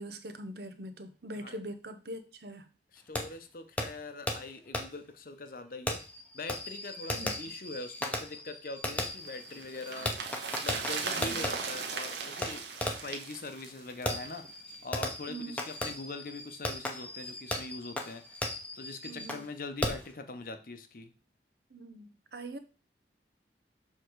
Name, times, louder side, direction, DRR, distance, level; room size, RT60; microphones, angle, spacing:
voice 1, 0.0-2.7 7.1-7.3 11.2-11.5 15.3-15.6 19.1-19.4 21.7-22.6, right 1 dB, 65° right, 10 dB, 0.8 m, -42 dB
voice 2, 2.9-6.0 6.3-10.1 10.5-12.6 13.0-18.5 18.7-21.1, left 3 dB, 50° left, 8 dB, 0.8 m, -42 dB
Fireworks, 3.1-3.2 3.8-3.9 4.3-4.4 4.7-4.8 5.9-11.5 12.4-12.5 12.8-13.1 14.1-19.5 19.8-20.1, left 1 dB, 10° left, 0.8 m, -36 dB
sound 1, 9.0-14.5 14.7-14.8, right 5 dB, 80° right, 1.2 m, -38 dB
6.7 x 3.7 x 4.6 m, 0.34 s
head